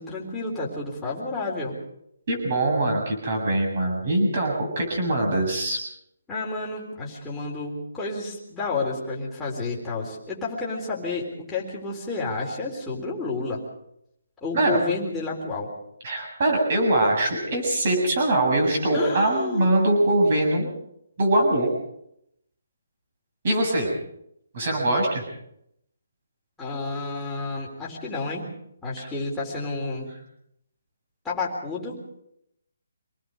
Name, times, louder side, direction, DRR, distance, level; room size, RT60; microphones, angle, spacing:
voice 1, 0.0-1.8 6.3-13.6 14.4-15.7 18.9-19.8 26.6-28.5 28.8-30.1 31.2-32.0, left 3 dB, 5° left, -6 dB, 3.8 m, -30 dB
voice 2, 2.3-5.8 14.5-14.8 16.0-20.7 21.2-21.7 23.4-23.9 24.5-25.2 29.0-29.1, right 1 dB, 35° right, 3 dB, 7.5 m, -22 dB
26.5 x 19.5 x 5.3 m, 0.75 s
hypercardioid pair, 175°, 0 cm